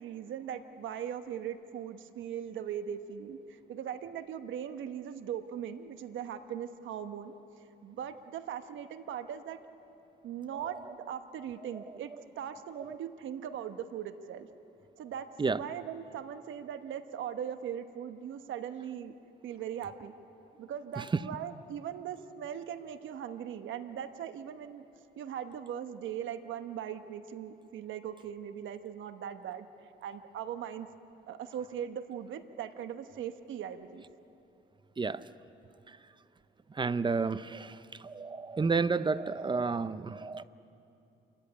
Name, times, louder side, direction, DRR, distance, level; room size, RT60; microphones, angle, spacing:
voice 1, 0.0-7.3 7.8-9.6 10.2-14.5 15.0-19.1 19.4-20.1 20.6-24.8 25.2-29.7 30.0-30.9 31.3-34.0, right 9 dB, 75° right, 1.1 m, -40 dB
voice 2, 36.7-40.4, right 4 dB, 25° right, 0.6 m, -31 dB
27.5 x 14.0 x 9.9 m
cardioid pair, 90°, 20 cm